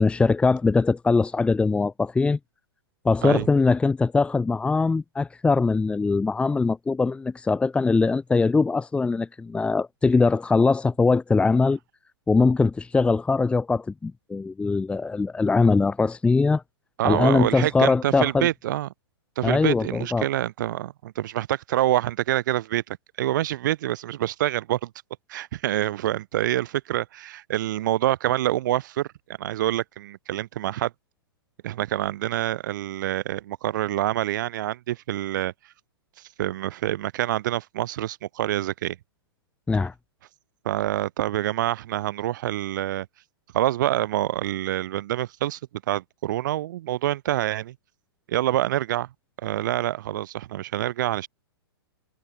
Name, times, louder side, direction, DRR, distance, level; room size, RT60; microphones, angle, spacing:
voice 1, 0.0-2.4 3.0-11.8 12.3-16.6 17.0-18.5 19.4-20.3 39.7-39.9, left 4 dB, 10° left, 2.7 m, -21 dB
voice 2, 17.0-18.9 19.4-24.9 25.3-29.1 29.4-30.9 31.6-35.5 36.4-39.0 40.6-43.1 43.5-45.6 45.9-47.7 48.3-49.1 49.4-51.3, right 14 dB, 50° right, 4.9 m, -26 dB
figure-of-eight pair, 110°, 13 cm